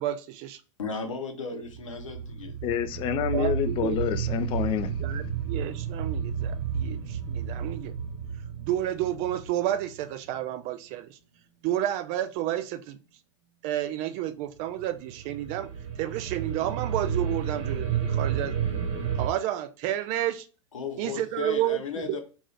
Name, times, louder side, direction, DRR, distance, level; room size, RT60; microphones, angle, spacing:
voice 1, 0.0-0.6 3.3-4.0 5.0-7.9 8.6-11.2 11.6-13.0 13.6-15.7 16.0-18.5 19.2-20.5 21.0-22.2, right 12 dB, 45° right, 0.4 m, -30 dB
voice 2, 0.8-2.6 20.7-22.2, left 5 dB, 85° left, 0.8 m, -35 dB
sound 1, 1.6-10.4 14.8-19.3, right 7 dB, 60° right, 0.9 m, -31 dB
voice 3, 2.6-4.9, left 10 dB, 35° left, 0.4 m, -28 dB
2.7 x 2.6 x 3.2 m
hypercardioid pair, 95°, 16 cm